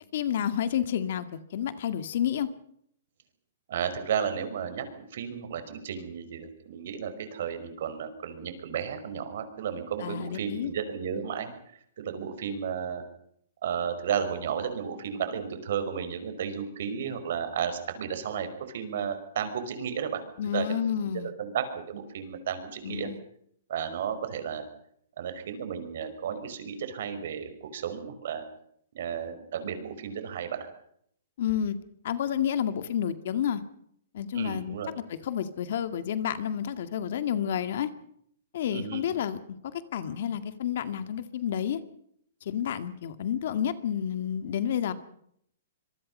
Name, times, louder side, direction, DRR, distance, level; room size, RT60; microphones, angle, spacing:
voice 1, 0.1-2.5 10.0-10.7 11.2-11.3 20.4-21.3 22.8-23.2 31.4-31.8 32.0-33.6 34.1-34.8 35.2-37.9 38.5-41.8 42.5-44.9, left 9 dB, 50° left, 11 dB, 2.0 m, -30 dB
voice 2, 3.7-11.5 12.0-13.0 13.6-20.2 20.5-21.1 21.4-23.1 23.7-24.6 25.2-28.4 29.0-30.7 34.3-34.9 38.7-39.0, right 7 dB, 55° right, 9 dB, 5.2 m, -33 dB
26.0 x 23.0 x 5.5 m, 0.69 s
hypercardioid pair, 170°, 0 cm